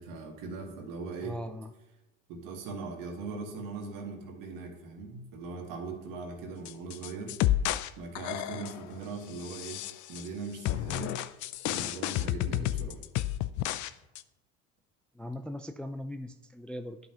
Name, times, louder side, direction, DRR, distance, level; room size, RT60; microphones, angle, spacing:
voice 1, 0.0-1.4 2.3-7.3 8.0-9.8 10.1-11.2 11.6-13.0, right 4 dB, 70° right, 2 dB, 1.8 m, -40 dB
voice 2, 1.2-1.7 12.5-12.7 15.2-17.0, left 1 dB, 5° left, 7 dB, 0.4 m, -39 dB
sound 1, 6.6-8.9 9.4-10.3 10.6-13.9 14.1-14.2, left 14 dB, 60° left, 0.5 m, -31 dB
11.5 x 5.4 x 2.9 m, 1.0 s
supercardioid pair, 85°, 34 cm